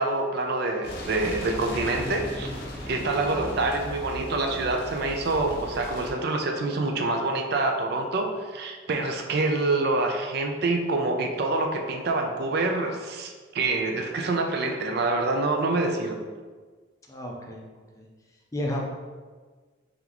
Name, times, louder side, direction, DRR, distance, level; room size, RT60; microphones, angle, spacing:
voice 1, 0.0-2.5 2.9-16.2, right 2 dB, 55° right, 3 dB, 0.4 m, -26 dB
sound 1, 0.8-6.1, left 1 dB, 50° left, 0.8 m, -37 dB
voice 2, 17.1-17.6 18.0-18.1 18.5-18.8, left 1 dB, 15° left, -2 dB, 0.5 m, -31 dB
3.5 x 3.0 x 3.8 m, 1.4 s
head